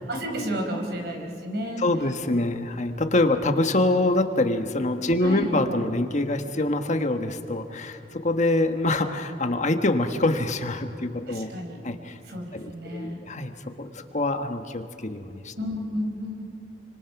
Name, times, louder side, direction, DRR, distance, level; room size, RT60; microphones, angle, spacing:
voice 1, 0.1-1.8 5.2-5.5 11.3-11.8 12.2-13.2 15.6-16.4, equal, 65° right, 3 dB, 4.8 m, -31 dB
voice 2, 1.8-11.5 11.8-12.2 12.5-13.5 13.8-15.5, left 2 dB, 45° left, 6 dB, 1.4 m, -25 dB
29.5 x 25.5 x 6.0 m, 2.6 s
head